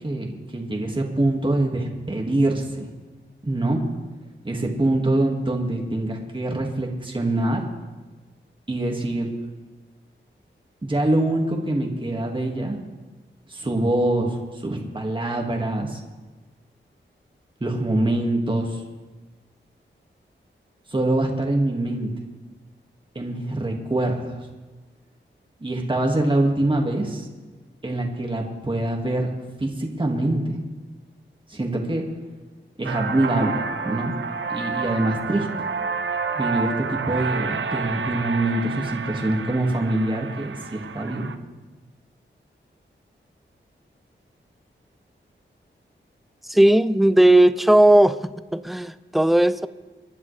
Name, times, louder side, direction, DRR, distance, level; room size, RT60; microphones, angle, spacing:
voice 1, 0.0-2.9 3.4-3.8 4.4-7.7 8.7-9.3 10.8-12.8 13.5-16.0 17.6-18.8 20.9-22.1 23.2-24.4 25.6-27.3 27.8-29.3 29.6-30.6 31.5-32.0 32.8-34.2 34.5-35.5 36.3-41.3, right 1 dB, 25° right, 0 dB, 1.8 m, -24 dB
sound 1, 32.8-41.4, right 5 dB, 75° right, 0.7 m, -29 dB
voice 2, 46.5-49.7, right 1 dB, ahead, 13 dB, 0.5 m, -17 dB
29.0 x 10.5 x 3.3 m, 1.3 s
wide cardioid pair, 80°, 20 cm